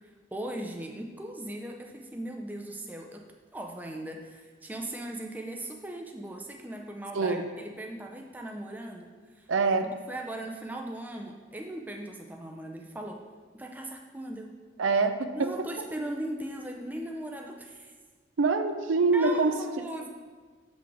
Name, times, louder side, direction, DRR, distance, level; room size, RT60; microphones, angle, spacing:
voice 1, 0.3-3.3 3.5-9.5 9.8-13.2 13.5-14.5 15.3-17.9 19.1-20.1, right 1 dB, 10° right, 2 dB, 0.5 m, -38 dB
voice 2, 7.1-7.5 9.5-9.9 14.8-15.5 18.4-19.5, right 4 dB, 75° right, 9 dB, 0.5 m, -25 dB
7.3 x 6.1 x 4.8 m, 1.5 s
head